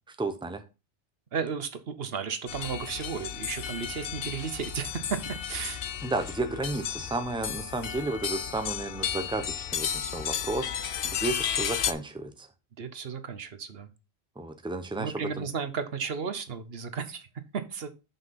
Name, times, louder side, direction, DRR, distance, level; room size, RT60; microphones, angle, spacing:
voice 1, 0.2-0.6 6.0-12.5 14.4-15.4, right 2 dB, 5° right, 0.8 m, -33 dB
voice 2, 1.3-5.8 12.8-13.9 15.0-17.3 17.5-17.9, right 6 dB, 70° right, 1.1 m, -34 dB
sound 1, 2.5-11.9, left 9 dB, 65° left, 0.8 m, -33 dB
5.9 x 5.3 x 5.7 m
omnidirectional pair, 1.1 m